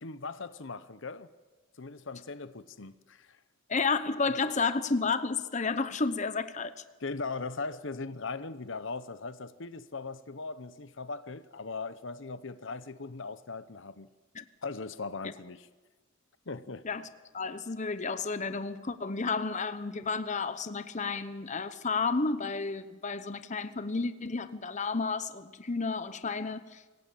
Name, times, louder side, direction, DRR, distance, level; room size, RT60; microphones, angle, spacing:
voice 1, 0.0-1.3 1.8-3.4 4.4-4.5 7.0-14.1 14.6-15.7 16.5-16.9, left 4 dB, 60° left, 0.9 m, -39 dB
voice 2, 3.7-6.7 14.3-14.4 16.8-17.1 17.3-26.8, left 4 dB, 35° left, 0.9 m, -31 dB
25.5 x 16.5 x 8.6 m
head